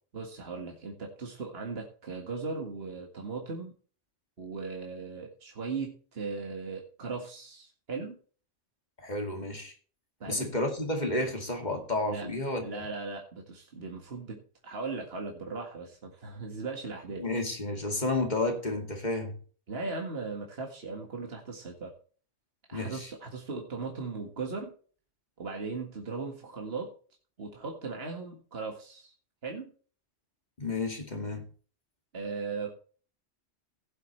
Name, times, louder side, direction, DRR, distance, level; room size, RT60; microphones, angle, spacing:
voice 1, 0.1-3.7 4.4-8.2 10.2-10.5 12.1-12.3 12.6-17.3 19.7-21.9 22.7-24.7 25.4-26.9 27.4-29.1 29.4-29.7 32.1-32.7, right 4 dB, 55° right, 1 dB, 2.1 m, -38 dB
voice 2, 9.0-9.7 10.3-12.8 17.2-19.3 22.7-23.1 30.6-31.5, left 2 dB, 35° left, 3 dB, 2.5 m, -31 dB
16.5 x 7.9 x 3.2 m, 0.41 s
omnidirectional pair, 1.3 m